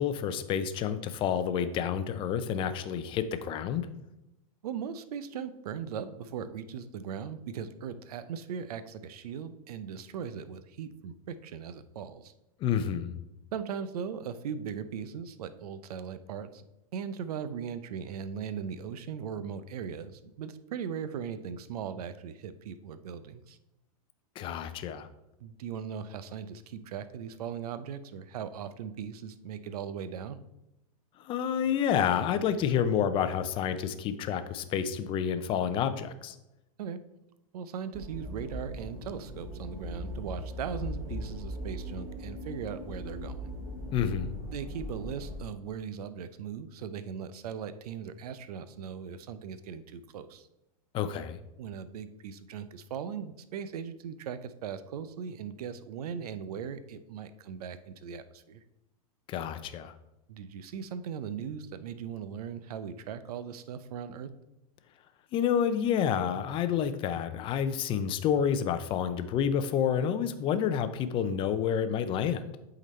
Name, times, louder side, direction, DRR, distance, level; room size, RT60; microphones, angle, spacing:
voice 1, 0.0-3.9 12.6-13.1 24.4-25.1 31.2-36.4 43.9-44.3 50.9-51.4 59.3-59.9 65.3-72.5, left 8 dB, 25° left, 11 dB, 0.5 m, -29 dB
voice 2, 4.6-12.3 13.5-16.6 16.9-23.6 25.4-30.4 36.8-37.0 37.5-43.5 44.5-50.5 51.6-58.6 60.3-64.3, right 7 dB, 80° right, 13 dB, 0.6 m, -39 dB
sound 1, 37.9-45.4, equal, 15° right, 1.5 m, -39 dB
8.1 x 3.9 x 4.2 m, 0.92 s
supercardioid pair, 140°, 19 cm